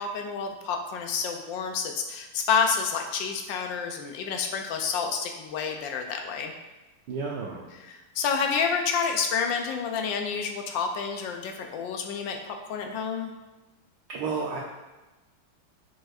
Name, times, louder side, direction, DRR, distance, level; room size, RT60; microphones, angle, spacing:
voice 1, 0.0-6.5 7.7-13.3, left 6 dB, 75° left, 4 dB, 1.1 m, -29 dB
voice 2, 7.1-7.7 14.1-14.6, right 4 dB, 70° right, -2 dB, 1.1 m, -31 dB
6.3 x 6.2 x 2.4 m, 1.1 s
omnidirectional pair, 2.4 m